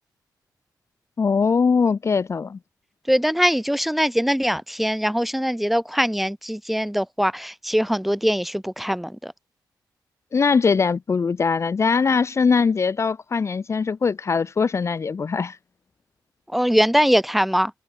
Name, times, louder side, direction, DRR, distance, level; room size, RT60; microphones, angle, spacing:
voice 1, 1.2-2.6 10.3-15.6, left 5 dB, 40° left, 1.7 m, -21 dB
voice 2, 3.1-9.3 16.5-17.7, equal, ahead, 4.9 m, -22 dB
wide cardioid pair, 130°, 8 cm